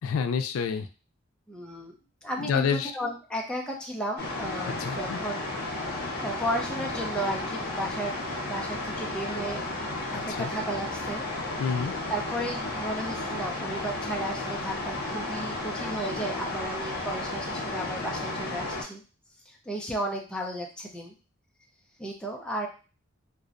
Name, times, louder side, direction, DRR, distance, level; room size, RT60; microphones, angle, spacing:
voice 1, 0.0-0.9 2.4-2.9 4.6-5.2 10.1-10.5 11.6-11.9, left 6 dB, 85° left, 9 dB, 0.3 m, -28 dB
voice 2, 1.5-1.9 2.2-5.5 6.2-9.6 10.1-11.6 12.1-19.0 19.5-21.1 22.0-22.7, right 1 dB, 5° left, 0 dB, 0.4 m, -34 dB
sound 1, 4.2-18.8, left 2 dB, 50° left, 0.6 m, -33 dB
2.5 x 2.0 x 2.4 m, 0.35 s
head